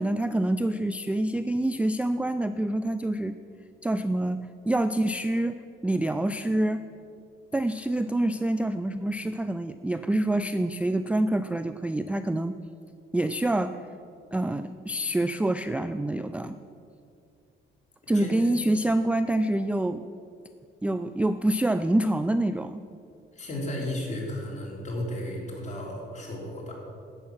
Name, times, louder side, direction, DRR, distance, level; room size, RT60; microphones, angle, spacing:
voice 1, 0.0-3.4 3.8-6.9 7.5-12.6 13.1-13.8 14.3-16.6 18.1-20.0 20.8-22.8, right 1 dB, 5° right, 11 dB, 0.3 m, -26 dB
voice 2, 18.1-18.5 23.3-26.7, left 1 dB, 35° left, -2 dB, 3.5 m, -34 dB
12.0 x 8.3 x 6.1 m, 2.4 s
cardioid pair, 90°, 20 cm